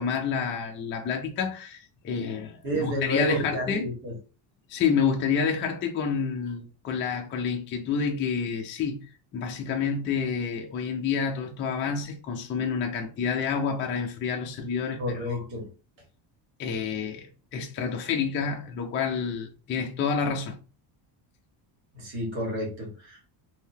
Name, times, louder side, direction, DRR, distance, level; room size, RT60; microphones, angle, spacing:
voice 1, 0.0-3.9 4.7-9.0 9.3-15.4 16.6-17.3 17.5-20.6, left 6 dB, 25° left, 0.4 m, -28 dB
voice 2, 2.6-4.1 15.0-15.7 21.9-23.2, equal, 65° right, 1.8 m, -30 dB
3.4 x 2.7 x 2.7 m
cardioid pair, 170°, 49 cm